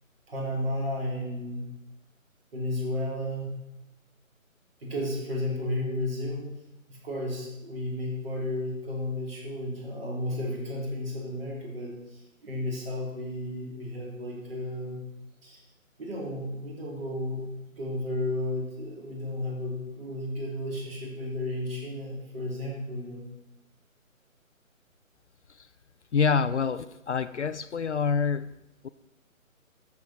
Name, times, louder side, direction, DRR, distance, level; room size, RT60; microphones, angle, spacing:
voice 1, 0.3-1.7 2.5-3.5 4.8-6.6 6.9-15.0 15.4-15.6 16.0-17.4 17.7-23.3, left 1 dB, 45° right, -2 dB, 3.9 m, -33 dB
voice 2, 26.1-28.9, left 6 dB, 60° left, 14 dB, 0.5 m, -27 dB
13.5 x 7.2 x 4.5 m, 0.92 s
figure-of-eight pair, 155°, 41 cm